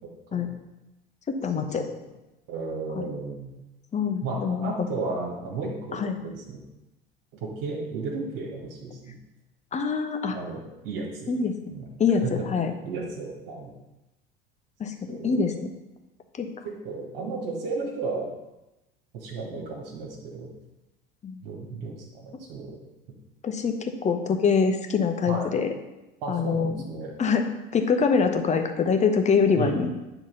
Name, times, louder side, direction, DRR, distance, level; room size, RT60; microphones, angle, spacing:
voice 1, 0.0-0.5 1.7-2.0 2.5-3.5 4.2-6.6 7.4-9.2 10.3-11.3 11.7-11.9 12.2-13.7 15.1-15.5 16.6-18.3 19.1-20.5 21.4-22.8 25.3-25.5 26.2-27.1 29.5-29.8, right 3 dB, 55° right, -2 dB, 2.0 m, -34 dB
voice 2, 1.3-1.8 3.9-4.7 5.9-6.2 9.7-10.4 11.3-11.5 12.0-12.7 14.8-15.5 16.4-16.5 21.2-21.4 23.4-25.7 26.3-26.8 27.2-27.5 27.7-29.9, left 5 dB, 25° left, 6 dB, 1.0 m, -24 dB
9.6 x 4.0 x 5.4 m, 1.0 s
figure-of-eight pair, 75°, 30 cm